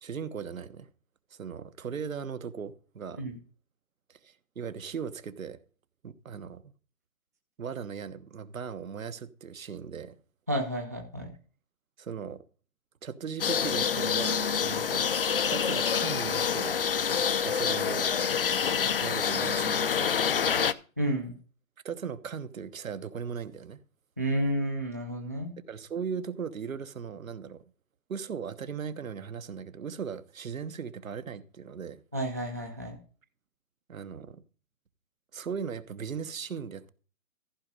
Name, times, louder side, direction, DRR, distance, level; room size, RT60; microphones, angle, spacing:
voice 1, 0.0-0.9 1.3-3.3 4.1-5.6 6.0-6.6 7.6-10.1 12.0-12.4 13.0-15.1 15.4-16.8 17.4-18.1 19.0-20.8 21.8-23.8 25.7-27.6 28.1-32.0 33.9-34.4 35.3-36.9, right 6 dB, 75° right, 1.3 m, -38 dB
voice 2, 10.5-11.3 21.0-21.3 24.2-25.5 32.1-33.0, right 1 dB, 15° right, 0.5 m, -31 dB
sound 1, 13.4-20.7, left 7 dB, 45° left, 0.5 m, -27 dB
14.5 x 5.2 x 5.4 m
hypercardioid pair, 160°, 41 cm